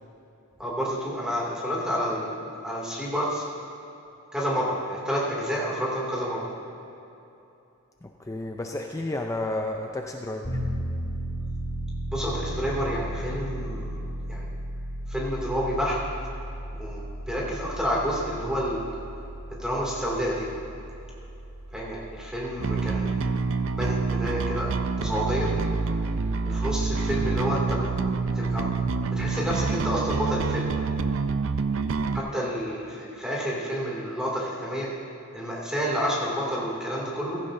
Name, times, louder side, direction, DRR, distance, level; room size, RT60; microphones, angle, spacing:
voice 1, 0.6-3.4 4.3-6.5 12.1-14.0 14.3-14.4 15.1-16.0 16.8-18.8 19.5-20.5 21.7-23.2 23.8-25.5 26.4-27.9 28.3-28.7 29.1-30.7 32.1-34.9 35.3-37.4, equal, 5° right, -5 dB, 2.4 m, -29 dB
voice 2, 8.0-10.6, left 2 dB, 15° left, 3 dB, 0.4 m, -32 dB
Piano, 10.4-27.1, right 1 dB, 35° left, 2.0 m, -36 dB
Bass guitar, 22.6-32.2, right 4 dB, 60° right, 0.4 m, -27 dB
15.5 x 15.0 x 2.7 m, 2.9 s
head